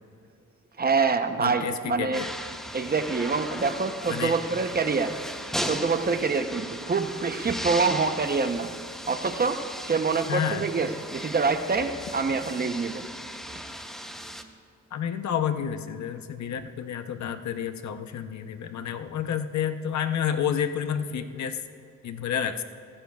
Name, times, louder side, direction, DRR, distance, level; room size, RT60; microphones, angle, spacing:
voice 1, 0.8-2.2 2.7-5.2 5.7-8.7 9.1-13.0, right 4 dB, 30° right, 8 dB, 0.8 m, -26 dB
voice 2, 1.4-2.3 4.1-4.4 10.3-10.7 14.9-21.6 22.0-22.6, left 8 dB, 65° left, 9 dB, 0.7 m, -30 dB
sound 1, 2.1-14.4, equal, ahead, 0.7 m, -37 dB
18.0 x 15.0 x 2.3 m, 2.5 s
wide cardioid pair, 125°, 30 cm